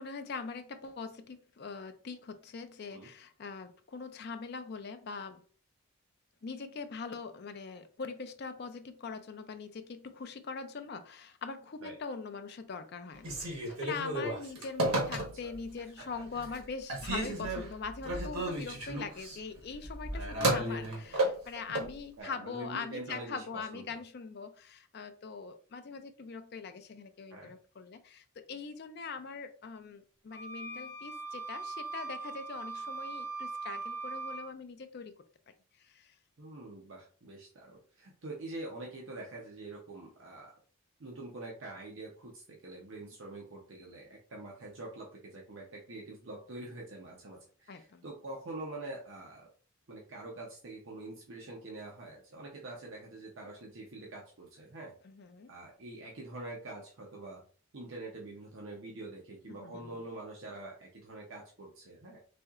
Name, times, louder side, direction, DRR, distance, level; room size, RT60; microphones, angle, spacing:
voice 1, 0.0-5.4 6.4-35.1 35.8-36.2 47.7-48.0 55.0-55.5 59.5-59.9, left 5 dB, 45° left, 0.4 m, -42 dB
Telephone, 13.2-15.6 16.1-16.6 16.9-21.9, right 1 dB, 85° right, 1.2 m, -33 dB
voice 2, 17.2-17.6 22.2-24.0 27.3-27.5 36.4-40.5 41.0-49.5 49.9-54.9 55.5-57.4 57.7-62.2, right 2 dB, 60° right, 0.7 m, -45 dB
sound 1, 30.3-34.5, right 3 dB, 15° left, 1.0 m, -40 dB
4.2 x 2.8 x 2.4 m
head